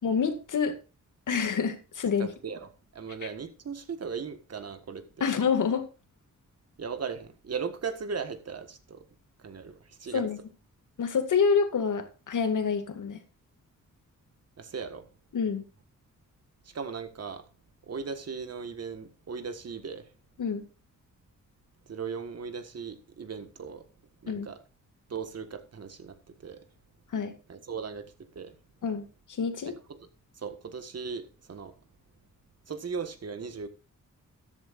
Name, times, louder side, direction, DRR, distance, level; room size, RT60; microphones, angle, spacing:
voice 1, 0.0-0.8 1.3-2.3 5.2-5.9 10.1-10.4 11.0-13.2 15.3-15.6 20.4-20.7 24.3-24.5 27.1-27.3 28.8-29.7, left 6 dB, 70° left, 2.1 m, -27 dB
voice 2, 2.2-5.3 6.8-9.1 9.4-10.3 14.6-15.1 16.6-17.5 17.9-20.1 21.9-23.8 24.2-24.6 25.1-26.6 27.5-28.6 29.7-30.1 30.4-31.7 32.7-33.7, right 5 dB, 50° right, 1.6 m, -38 dB
13.5 x 11.5 x 2.5 m
wide cardioid pair, 145°, 32 cm